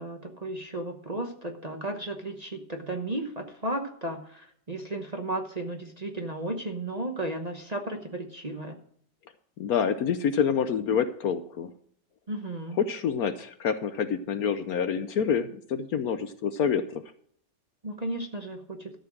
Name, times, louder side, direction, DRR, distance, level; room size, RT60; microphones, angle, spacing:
voice 1, 0.0-8.8 12.3-12.8 17.8-18.9, right 1 dB, 30° right, 2 dB, 0.9 m, -34 dB
voice 2, 9.6-11.7 12.8-17.0, left 7 dB, 65° left, 10 dB, 1.1 m, -27 dB
13.0 x 7.0 x 6.1 m, 0.63 s
omnidirectional pair, 1.9 m